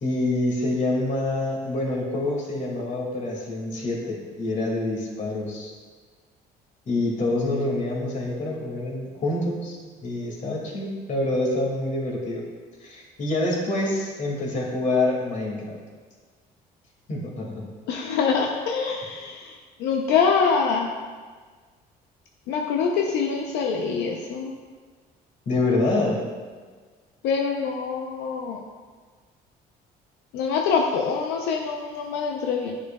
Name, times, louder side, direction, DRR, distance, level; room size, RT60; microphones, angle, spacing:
voice 1, 0.0-5.7 6.9-12.5 12.8-15.8 17.1-17.7 25.5-26.2, left 2 dB, 45° left, -2 dB, 2.1 m, -26 dB
voice 2, 17.9-20.9 22.5-24.5 27.2-28.6 30.3-32.8, left 5 dB, 90° left, 1 dB, 0.7 m, -25 dB
10.5 x 6.3 x 2.3 m, 1.5 s
cardioid pair, 110°, 17 cm